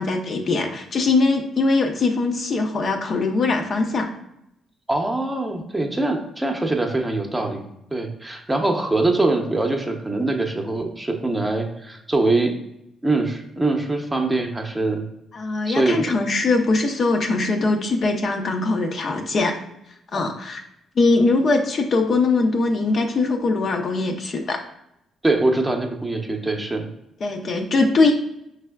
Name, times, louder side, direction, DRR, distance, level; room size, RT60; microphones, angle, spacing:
voice 1, 0.0-4.1 15.3-19.5 20.1-20.6 21.0-24.6 27.2-28.1, left 3 dB, 50° left, 3 dB, 0.6 m, -21 dB
voice 2, 4.9-12.5 13.0-15.0 15.7-16.2 25.2-26.9, right 2 dB, 15° right, 3 dB, 0.7 m, -23 dB
5.3 x 3.3 x 2.3 m, 0.81 s
cardioid pair, 90°, 0 cm